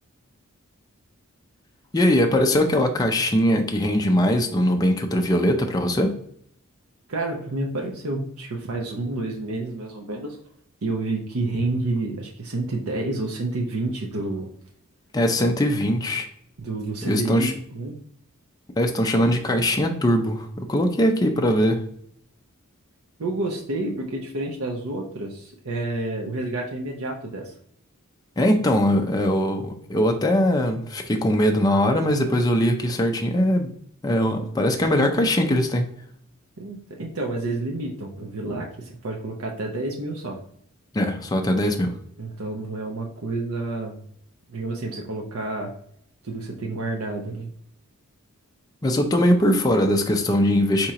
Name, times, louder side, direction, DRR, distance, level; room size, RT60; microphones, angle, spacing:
voice 1, 1.9-6.1 15.1-16.3 17.0-17.5 18.8-21.9 28.4-33.7 34.0-35.9 40.9-42.0 48.8-50.9, equal, 15° left, 3 dB, 0.4 m, -21 dB
voice 2, 7.1-10.4 10.8-14.5 16.6-17.9 23.2-27.5 36.6-40.4 42.2-44.0 44.5-45.7 46.2-47.5, right 2 dB, 80° right, 1 dB, 0.7 m, -29 dB
4.3 x 2.9 x 3.7 m, 0.66 s
head